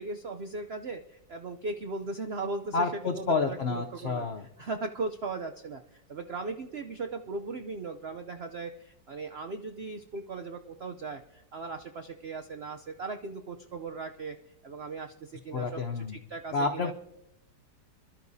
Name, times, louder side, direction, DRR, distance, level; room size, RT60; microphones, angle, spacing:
voice 1, 0.0-4.3 4.6-14.4 14.6-16.9, right 3 dB, 75° right, 6 dB, 0.5 m, -38 dB
voice 2, 2.7-4.4 15.5-16.2 16.5-16.9, left 4 dB, 80° left, 6 dB, 0.5 m, -29 dB
26.5 x 12.0 x 2.7 m, 0.86 s
omnidirectional pair, 2.0 m